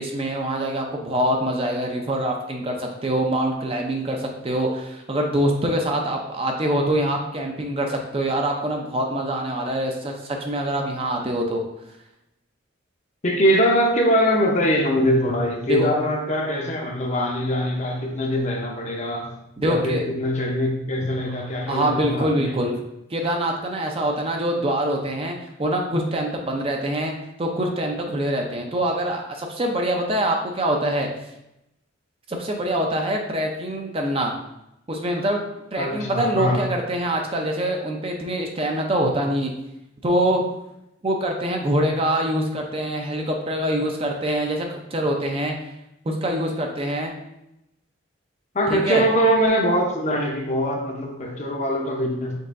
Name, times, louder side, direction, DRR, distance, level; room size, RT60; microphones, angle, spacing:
voice 1, 0.0-11.6 15.7-15.9 19.6-20.0 21.7-22.7 23.1-27.1 27.4-31.1 32.3-34.3 34.9-35.4 35.7-39.5 40.0-40.4 41.0-45.5 46.1-47.2 48.7-49.0, right 1 dB, 30° right, 2 dB, 0.5 m, -24 dB
voice 2, 13.2-19.3 19.6-22.5 35.8-36.6 48.5-52.4, equal, 35° left, 2 dB, 0.6 m, -22 dB
5.3 x 3.7 x 2.5 m, 0.86 s
head